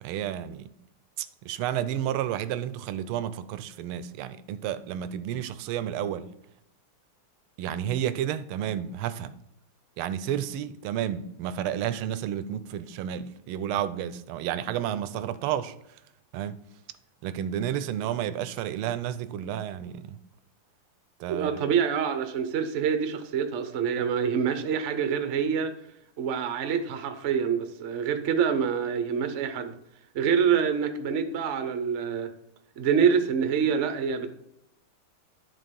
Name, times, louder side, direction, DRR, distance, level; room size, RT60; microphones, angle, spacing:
voice 1, 0.0-0.7 1.2-6.3 7.6-9.3 10.0-15.7 16.3-16.6 17.2-20.2 21.2-21.6, right 10 dB, 85° right, 1.5 m, -31 dB
voice 2, 21.3-25.7 26.2-29.7 30.1-32.3 32.8-34.3, right 7 dB, 60° right, 0.8 m, -26 dB
10.5 x 3.7 x 5.2 m
omnidirectional pair, 2.3 m